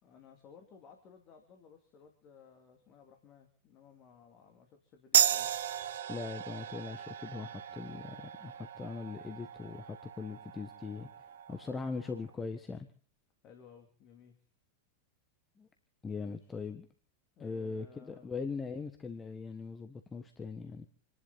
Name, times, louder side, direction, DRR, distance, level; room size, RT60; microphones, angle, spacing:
voice 1, 0.0-5.5 13.4-14.3 16.2-16.4 17.4-18.3, left 6 dB, 35° left, 4 dB, 2.9 m, -58 dB
sound 1, 5.1-12.2, right 10 dB, 60° right, 0.8 m, -35 dB
voice 2, 6.1-11.1 11.5-12.9 15.6-15.7 16.0-16.9 17.4-20.9, left 4 dB, 15° left, 7 dB, 1.5 m, -40 dB
28.5 x 11.0 x 4.2 m, 0.43 s
figure-of-eight pair, 90°, 0 cm